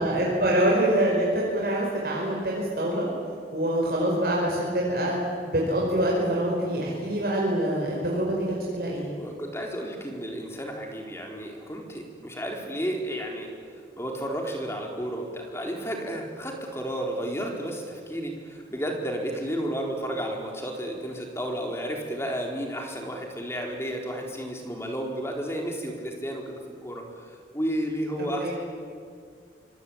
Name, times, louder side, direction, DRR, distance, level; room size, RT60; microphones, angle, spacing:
voice 1, 0.0-3.1 3.5-5.1 5.5-9.1 28.4-28.5, right 1 dB, 60° right, -3 dB, 5.3 m, -25 dB
voice 2, 9.2-13.5 14.0-28.5, equal, 15° left, 1 dB, 4.3 m, -32 dB
25.5 x 24.0 x 8.9 m, 2.2 s
head